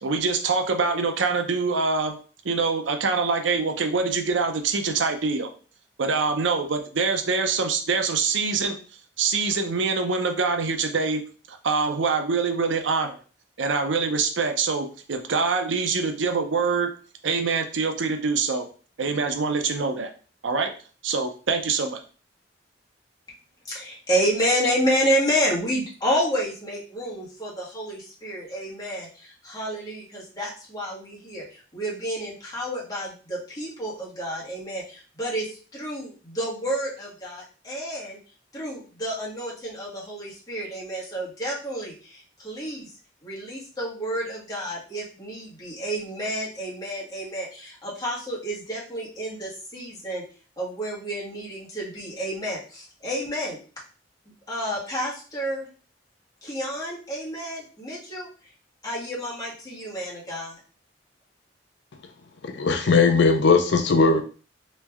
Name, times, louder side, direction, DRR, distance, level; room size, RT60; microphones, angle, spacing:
voice 1, 0.0-2.2 2.4-5.5 6.0-8.8 9.2-11.2 11.5-13.2 13.6-16.9 17.2-18.7 19.0-20.1 20.4-20.7 21.0-22.0, right 4 dB, 90° right, 6 dB, 0.6 m, -24 dB
voice 2, 23.6-38.2 38.5-42.9 43.2-50.2 50.6-53.6 54.5-55.7 56.4-58.5 58.8-60.6, equal, 20° left, -6 dB, 1.6 m, -30 dB
voice 3, 62.4-64.2, left 4 dB, 65° left, 6 dB, 0.5 m, -19 dB
3.2 x 3.1 x 3.5 m, 0.38 s
head